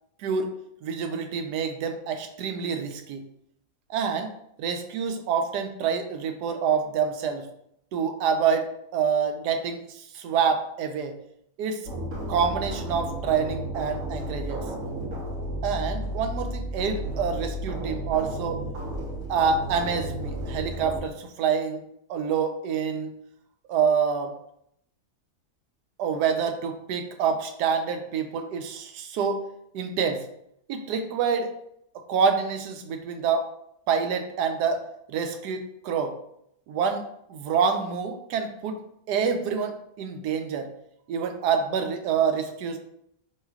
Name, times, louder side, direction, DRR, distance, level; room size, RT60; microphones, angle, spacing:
voice 1, 0.2-0.5 0.8-3.2 3.9-4.3 4.6-7.5 7.9-8.7 8.9-9.8 10.1-11.1 11.6-11.8 12.3-14.6 15.6-18.6 19.3-21.8 22.1-23.1 23.7-24.3 26.0-29.4 29.7-30.2 30.7-31.5 32.1-33.5 33.9-34.8 35.1-36.1 36.7-37.0 37.3-38.8 39.1-40.7 41.1-42.8, right 6 dB, 85° right, 6 dB, 1.2 m, -27 dB
sound 1, 11.9-21.0, right 1 dB, 60° right, 1.3 m, -33 dB
4.7 x 3.1 x 2.3 m, 0.73 s
omnidirectional pair, 1.7 m